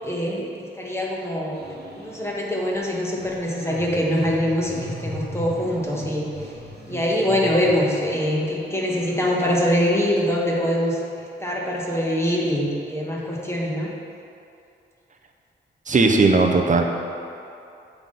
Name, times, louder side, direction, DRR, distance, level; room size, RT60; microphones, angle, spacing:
voice 1, 0.0-0.5 0.8-6.3 6.9-11.0 11.4-13.9, equal, 15° left, -3 dB, 1.2 m, -23 dB
sound 1, 1.5-2.4 2.7-9.7 10.3-10.4, equal, 55° right, 1.2 m, -38 dB
voice 2, 15.9-16.8, right 3 dB, 40° right, 3 dB, 0.7 m, -17 dB
7.4 x 3.5 x 5.3 m, 2.6 s
cardioid pair, 75°, 20 cm